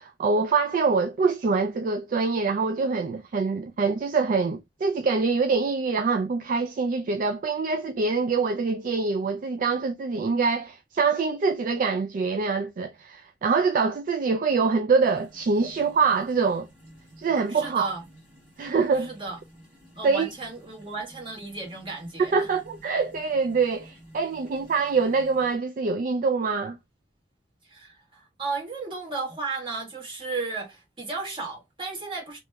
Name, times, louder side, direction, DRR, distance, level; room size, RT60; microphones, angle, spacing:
voice 1, 0.0-16.7 17.2-17.9 18.6-19.1 20.0-20.3 22.3-26.8, right 4 dB, 50° right, 0.3 m, -25 dB
sound 1, 15.0-25.6, equal, 5° right, 1.5 m, -52 dB
voice 2, 17.5-18.0 19.0-19.4 19.9-22.5 27.6-32.4, right 3 dB, 30° right, 1.4 m, -34 dB
2.9 x 2.3 x 3.1 m
head